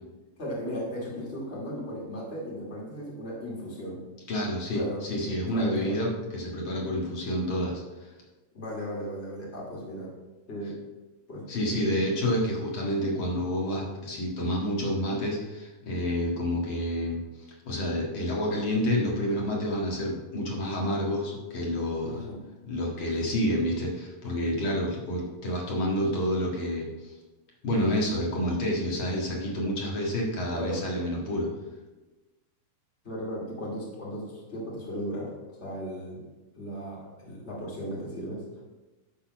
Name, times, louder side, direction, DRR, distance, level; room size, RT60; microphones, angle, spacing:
voice 1, 0.4-4.0 4.7-5.0 5.5-6.0 8.5-10.1 10.5-10.7 11.3-12.1 22.0-22.4 30.5-30.8 33.0-35.3 35.6-36.2 36.5-38.4, equal, 20° left, -3 dB, 2.3 m, -36 dB
voice 2, 4.3-8.1 11.5-22.2 22.6-27.1 27.6-31.5, equal, 45° left, -2 dB, 2.0 m, -29 dB
12.0 x 4.2 x 5.9 m, 1.1 s
omnidirectional pair, 4.2 m